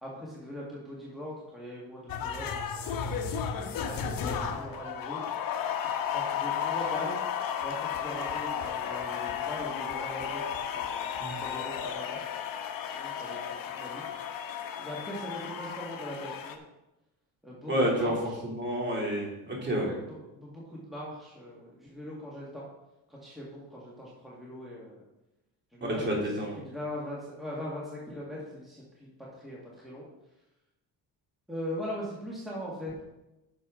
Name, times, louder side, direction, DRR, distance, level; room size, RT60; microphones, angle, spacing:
voice 1, 0.0-3.5 3.7-5.2 6.0-7.1 7.6-11.1 11.3-12.2 12.8-14.0 14.8-16.6 17.4-18.4 19.6-22.6 23.1-25.0 25.7-26.1 26.3-29.1 29.4-30.0 31.5-33.0, equal, ahead, -6 dB, 1.8 m, -41 dB
sound 1, 2.1-16.6, left 8 dB, 55° left, 1.0 m, -33 dB
voice 2, 17.7-18.1 18.4-19.9 26.0-26.5, equal, 25° right, -3 dB, 3.0 m, -29 dB
10.0 x 6.7 x 3.8 m, 0.94 s
cardioid pair, 140°, 39 cm